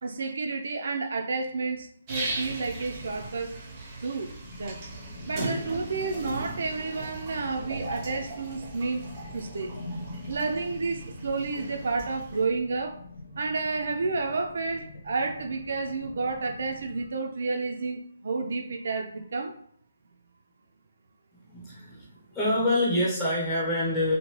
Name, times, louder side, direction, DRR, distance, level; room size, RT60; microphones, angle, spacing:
voice 1, 0.0-3.6 4.0-4.3 4.6-4.8 5.2-9.0 9.3-9.7 10.3-13.0 13.4-19.5, right 4 dB, 60° right, 4 dB, 0.4 m, -30 dB
sound 1, 2.1-12.4, right 2 dB, 20° right, 0.7 m, -38 dB
sound 2, 4.4-17.1, left 2 dB, 45° left, 0.5 m, -45 dB
voice 2, 21.5-24.2, left 1 dB, 15° left, -6 dB, 1.0 m, -26 dB
2.9 x 2.7 x 3.0 m, 0.63 s
hypercardioid pair, 170°, 0 cm